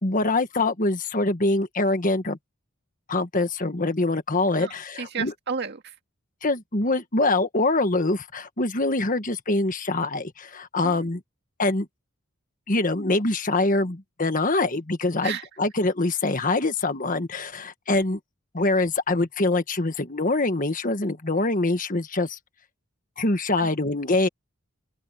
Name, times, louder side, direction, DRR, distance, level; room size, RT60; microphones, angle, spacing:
voice 1, 0.0-2.4 3.1-5.3 6.4-11.2 11.6-11.9 12.7-18.2 18.5-22.4 23.2-24.3, left 2 dB, 40° left, 1.5 m, -24 dB
voice 2, 4.6-6.0 10.8-11.1 15.2-15.5 23.6-23.7, right 6 dB, 50° right, 2.0 m, -33 dB
open air
head